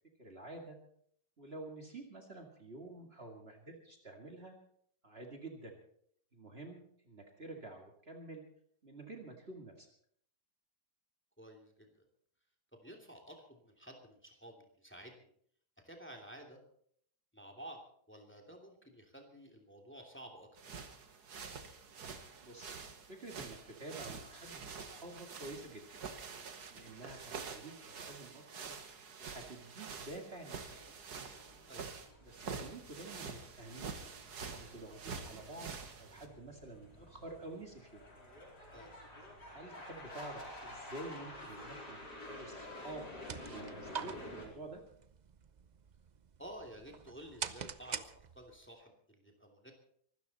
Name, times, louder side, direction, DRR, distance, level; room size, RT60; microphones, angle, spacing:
voice 1, 0.2-0.8 1.4-4.6 5.0-5.8 6.3-8.4 8.8-9.9 22.4-22.8 23.0-25.9 26.7-28.7 29.2-30.9 32.2-33.9 34.5-35.7 36.0-38.0 39.5-43.0 43.3-44.8, right 2 dB, 40° right, 2 dB, 2.4 m, -49 dB
voice 2, 11.4-12.0 12.7-15.3 15.8-16.6 17.3-17.8 18.1-20.8 31.7-31.9 38.7-38.9 46.4-49.7, right 1 dB, 5° left, 2 dB, 2.7 m, -52 dB
sound 1, 20.6-36.3, right 5 dB, 70° right, 2.1 m, -47 dB
sound 2, 30.5-44.5, left 1 dB, 90° left, 5.1 m, -51 dB
sound 3, 42.9-48.7, right 7 dB, 55° right, 0.5 m, -46 dB
24.0 x 13.0 x 4.2 m, 0.64 s
omnidirectional pair, 1.7 m